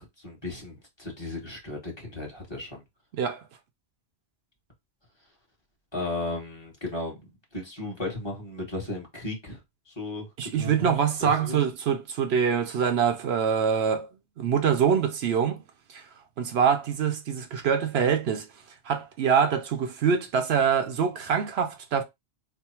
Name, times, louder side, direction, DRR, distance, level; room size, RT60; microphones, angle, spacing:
voice 1, 0.0-2.8 5.9-9.6 9.9-10.3 10.5-10.9 11.2-11.6, left 2 dB, 25° left, 1.4 m, -35 dB
voice 2, 10.4-14.1 14.4-15.6 15.9-16.0 16.4-18.5 18.9-22.0, right 7 dB, 75° right, 0.9 m, -24 dB
3.4 x 2.1 x 4.3 m
omnidirectional pair, 1.1 m